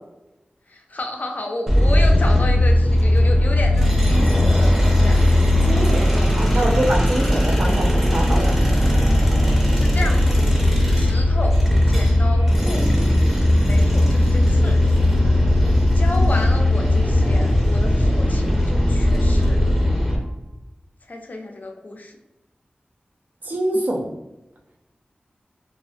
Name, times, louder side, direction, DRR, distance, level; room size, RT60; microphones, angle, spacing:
voice 1, 0.7-6.8 8.8-9.3 9.7-10.4 11.0-11.6 11.9-12.9 13.7-15.1 15.9-19.8 21.1-22.1, left 2 dB, 55° left, 2 dB, 0.4 m, -32 dB
sound 1, 1.7-20.2, left 1 dB, 5° right, 0.6 m, -17 dB
voice 2, 5.6-8.5 23.4-24.0, right 1 dB, 60° right, -2 dB, 0.4 m, -25 dB
sound 2, 12.4-20.5, right 1 dB, 85° right, 0.9 m, -39 dB
2.4 x 2.1 x 2.5 m, 0.94 s
wide cardioid pair, 65°, 3 cm